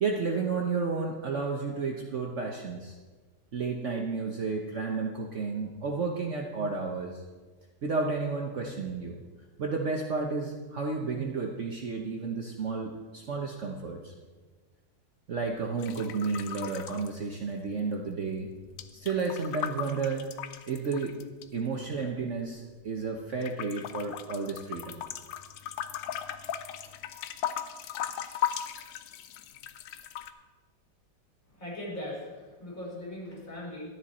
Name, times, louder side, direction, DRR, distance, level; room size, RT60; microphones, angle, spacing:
voice 1, 0.0-3.0 3.5-7.2 7.8-9.2 9.6-14.1 15.3-18.5 18.9-20.3 20.7-21.2 21.5-25.0, right 4 dB, 50° right, 1 dB, 1.0 m, -32 dB
sound 1, 15.8-17.8 18.1-21.4 22.1-23.1 23.4-30.3, left 10 dB, 90° left, 1.3 m, -38 dB
voice 2, 31.5-33.8, left 1 dB, 45° left, -4 dB, 3.8 m, -39 dB
12.5 x 10.5 x 4.2 m, 1.4 s
omnidirectional pair, 1.9 m